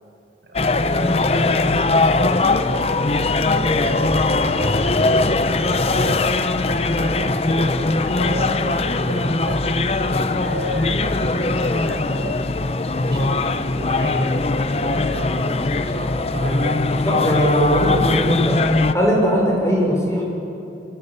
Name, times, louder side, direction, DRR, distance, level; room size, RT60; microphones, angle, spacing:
sound 1, 0.5-18.9, left 2 dB, 35° left, 0.7 m, -20 dB
voice 1, 0.5-3.1 3.5-5.2 5.6-6.4 6.8-9.7 10.4-12.5 12.9-14.4 14.7-16.8 17.1-17.5, equal, 65° right, 1 dB, 5.1 m, -32 dB
voice 2, 16.9-18.6 18.9-20.2, equal, 15° left, -2 dB, 5.0 m, -19 dB
25.5 x 16.5 x 8.4 m, 2.9 s
head